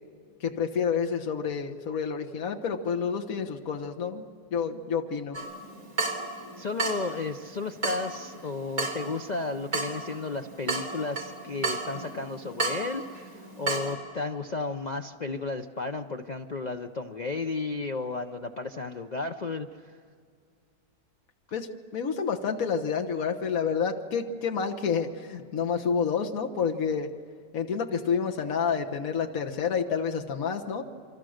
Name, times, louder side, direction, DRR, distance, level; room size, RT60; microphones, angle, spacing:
voice 1, 0.4-4.2 4.5-5.4 21.5-27.1 27.5-30.8, left 6 dB, 65° left, 3 dB, 1.7 m, -29 dB
Water tap faucet / Drip, 5.3-13.9, right 3 dB, 65° right, 3.7 m, -34 dB
voice 2, 6.6-19.9, left 3 dB, 45° left, 6 dB, 0.5 m, -33 dB
28.0 x 24.5 x 6.5 m, 2.3 s
omnidirectional pair, 1.6 m